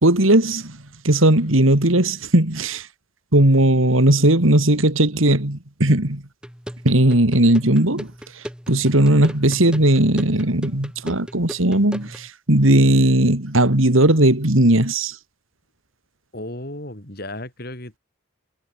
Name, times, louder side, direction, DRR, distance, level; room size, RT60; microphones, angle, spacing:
voice 1, 0.0-2.9 3.3-6.2 6.8-15.2, right 1 dB, 80° right, 3.1 m, -17 dB
sound 1, 6.4-12.3, equal, 5° right, 5.9 m, -37 dB
voice 2, 8.9-9.2 16.3-18.0, left 1 dB, 50° left, 4.8 m, -35 dB
head